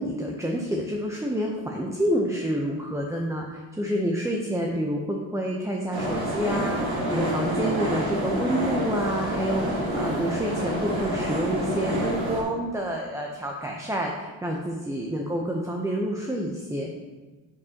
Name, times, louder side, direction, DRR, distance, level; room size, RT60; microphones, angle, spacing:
voice 1, 0.0-16.9, equal, 5° right, 0 dB, 0.7 m, -28 dB
sound 1, 5.9-12.4, right 1 dB, 50° right, 1.8 m, -28 dB
9.5 x 4.3 x 2.9 m, 1.3 s
supercardioid pair, 65°, 47 cm